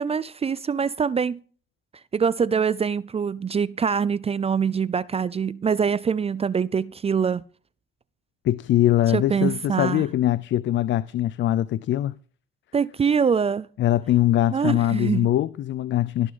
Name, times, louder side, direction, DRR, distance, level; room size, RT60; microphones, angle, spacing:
voice 1, 0.0-1.4 2.1-7.4 9.1-10.0 12.7-13.7 14.5-15.3, right 6 dB, 30° right, 0.5 m, -24 dB
voice 2, 8.4-12.2 13.8-16.3, left 13 dB, 70° left, 0.6 m, -22 dB
17.0 x 6.5 x 5.3 m
cardioid pair, 90°, 20 cm